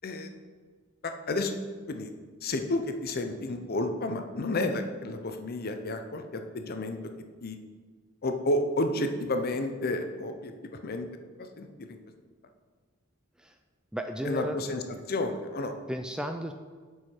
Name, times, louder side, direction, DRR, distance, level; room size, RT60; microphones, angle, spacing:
voice 1, 1.0-1.5 1.9-2.1 2.4-7.0 7.4-7.6 8.2-10.5 10.8-11.1 11.4-12.0 14.2-14.8 15.1-15.7, left 2 dB, 50° left, 6 dB, 0.6 m, -31 dB
voice 2, 13.9-15.0 15.9-16.5, equal, 5° right, 5 dB, 0.3 m, -35 dB
8.1 x 4.8 x 4.5 m, 1.5 s
head